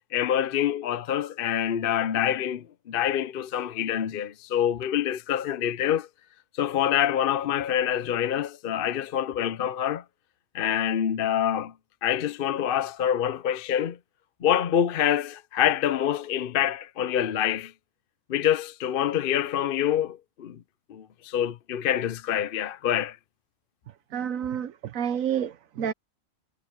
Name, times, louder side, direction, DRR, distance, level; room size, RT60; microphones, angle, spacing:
voice 1, 0.1-6.1 6.6-10.0 10.5-11.7 12.0-14.0 14.4-17.7 18.3-20.6 20.9-23.2, left 10 dB, 50° left, 0.7 m, -26 dB
voice 2, 24.1-25.9, right 8 dB, 75° right, 1.3 m, -29 dB
omnidirectional pair, 1.4 m